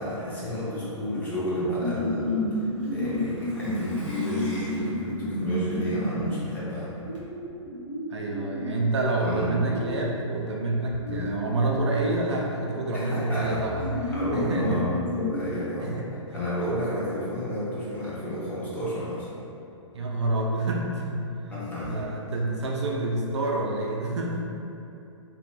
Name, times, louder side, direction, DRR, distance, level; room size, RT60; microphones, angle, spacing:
voice 1, 0.0-6.9 9.2-9.6 11.1-11.3 12.9-13.7 14.1-16.0 16.3-19.3 21.5-21.9, equal, 10° left, -10 dB, 0.6 m, -31 dB
Truck, 1.7-6.4 6.7-6.8 7.1-7.2, equal, 80° left, 0.9 m, -49 dB
sound 1, 1.8-8.7 9.3-12.2 13.1-13.2 13.6-15.5, left 1 dB, 30° left, 1.1 m, -31 dB
voice 2, 8.1-14.0 14.3-14.8 15.4-16.1 19.9-21.3 21.8-24.4, right 2 dB, 60° right, -1 dB, 0.4 m, -28 dB
2.6 x 2.4 x 2.7 m, 2.8 s
figure-of-eight pair, 120°, 16 cm